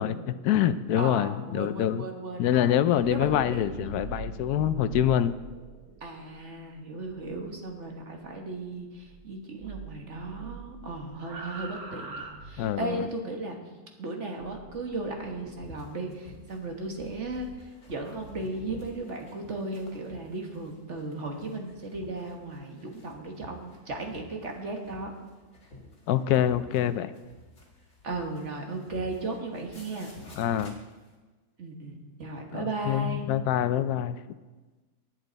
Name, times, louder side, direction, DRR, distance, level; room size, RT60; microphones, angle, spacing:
voice 1, 0.0-2.0 2.4-5.3 12.6-13.1 26.1-27.1 30.4-30.7 32.5-34.2, left 11 dB, 85° left, 13 dB, 1.1 m, -25 dB
voice 2, 0.9-2.8 3.1-4.2 6.0-13.6 14.0-25.1 28.0-30.1 31.6-33.3, right 2 dB, 50° right, 2 dB, 1.7 m, -36 dB
sound 1, 2.9-9.3 9.6-13.0 14.4-15.6 16.3-18.9, right 5 dB, 75° right, 1.9 m, -45 dB
sound 2, 15.6-31.1, left 2 dB, 50° left, 2.7 m, -51 dB
19.5 x 7.7 x 4.0 m, 1.2 s
omnidirectional pair, 1.6 m